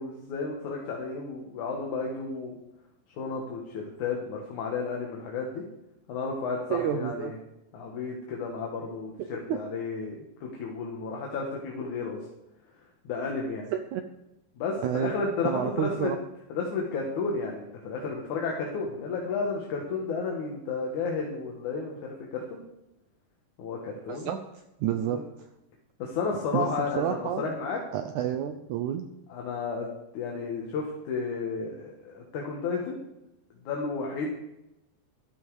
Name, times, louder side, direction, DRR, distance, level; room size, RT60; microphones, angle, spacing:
voice 1, 0.0-2.5 3.2-5.6 6.1-7.4 7.7-12.2 13.0-13.7 14.6-16.1 16.5-22.6 23.6-24.4 25.1-25.2 26.0-27.8 29.3-29.9 30.1-33.0 33.6-34.3, left 4 dB, 60° left, 0 dB, 2.7 m, -32 dB
voice 2, 6.7-7.3 9.5-9.6 13.7-14.0 14.8-15.1 15.4-16.2 24.1-24.4 24.8-25.2 26.5-26.7 27.0-27.4 27.9-29.0, right 10 dB, 85° right, 7 dB, 1.7 m, -29 dB
12.5 x 11.5 x 4.8 m, 0.89 s
omnidirectional pair, 4.3 m